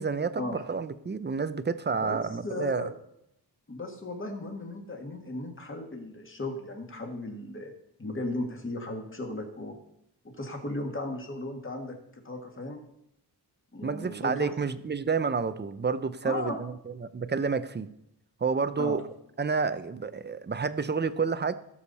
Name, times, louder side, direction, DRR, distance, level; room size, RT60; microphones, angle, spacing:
voice 1, 0.0-2.9 13.8-16.7 17.1-17.9 18.4-19.0 19.4-21.5, right 5 dB, 25° right, 0.5 m, -29 dB
voice 2, 2.0-2.9 3.7-7.7 8.0-9.8 10.2-12.8 13.7-14.5 16.2-16.6 18.8-19.0, left 2 dB, 30° left, 1.9 m, -36 dB
17.5 x 7.1 x 4.1 m
wide cardioid pair, 165°, 42 cm